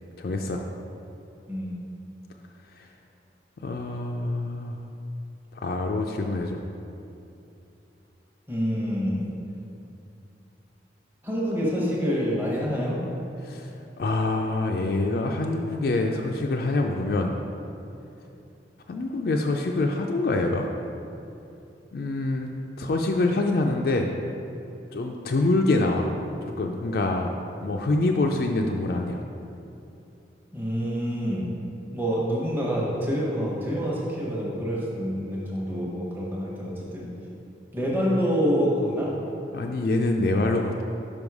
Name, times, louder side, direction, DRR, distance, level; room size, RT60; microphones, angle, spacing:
voice 1, 0.2-0.6 2.8-2.9 3.6-4.8 5.5-6.6 13.4-13.7 14.0-17.3 18.9-20.7 21.9-22.5 22.8-24.1 24.9-26.1 26.4-27.3 27.6-29.2 39.5-40.8, left 2 dB, 55° left, 2 dB, 0.3 m, -25 dB
voice 2, 8.5-9.2 11.2-13.0 30.5-31.4 31.9-37.1 37.7-39.1, equal, 10° right, -5 dB, 0.9 m, -27 dB
5.3 x 5.3 x 4.7 m, 2.7 s
head